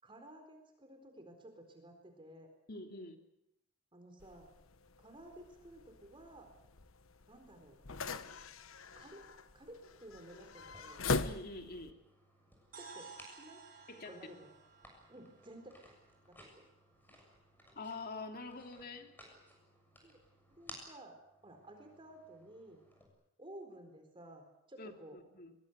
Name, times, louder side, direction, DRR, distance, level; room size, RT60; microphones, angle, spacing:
voice 1, 0.0-2.5 3.9-4.5 5.0-6.5 7.3-7.8 8.9-9.2 9.5-11.0 12.7-13.6 14.1-14.5 15.1-16.0 16.6-16.7 20.0-20.2 20.5-21.2 21.4-22.8 23.4-25.2, right 1 dB, 25° right, 4 dB, 4.2 m, -54 dB
voice 2, 2.7-3.2 11.2-12.0 13.9-14.2 17.1-17.2 17.7-19.2 24.8-25.5, left 3 dB, 45° left, 4 dB, 3.0 m, -46 dB
sound 1, 4.2-11.9, left 3 dB, 75° left, 1.3 m, -42 dB
sound 2, 10.6-23.1, equal, 10° left, 7.3 m, -60 dB
sound 3, 12.7-16.7, right 5 dB, 45° right, 5.1 m, -56 dB
23.0 x 23.0 x 8.2 m, 0.83 s
head